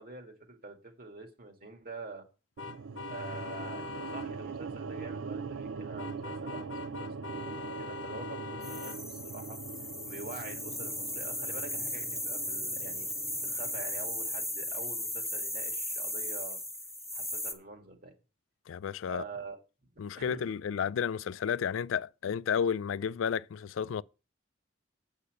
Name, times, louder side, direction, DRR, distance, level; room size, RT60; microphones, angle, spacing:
voice 1, 0.0-2.3 3.1-9.6 10.0-13.1 13.4-16.6 17.1-18.1 19.1-19.6 20.2-20.5, right 3 dB, 50° right, 2.1 m, -46 dB
sound 1, 2.6-4.3 6.0-9.0, left 5 dB, 65° left, 0.8 m, -42 dB
sound 2, 2.6-14.8, right 5 dB, 75° right, 0.5 m, -42 dB
sound 3, 8.6-17.5, left 1 dB, ahead, 1.3 m, -36 dB
voice 2, 18.7-19.2 20.0-24.0, left 7 dB, 85° left, 0.4 m, -32 dB
8.4 x 5.6 x 6.5 m
head